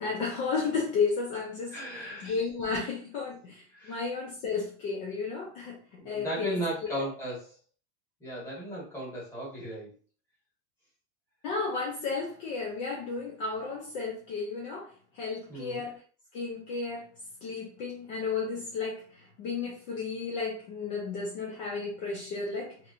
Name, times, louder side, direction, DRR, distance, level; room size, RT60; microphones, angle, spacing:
voice 1, 0.0-6.6 6.9-7.0 11.4-16.0 16.3-17.1 17.4-22.8, left 4 dB, 35° left, 0.6 m, -33 dB
voice 2, 1.7-2.3 3.7-4.0 6.0-7.6 8.2-9.9 15.5-15.8, equal, 5° left, 1.2 m, -36 dB
2.9 x 2.8 x 2.4 m
supercardioid pair, 165°, 39 cm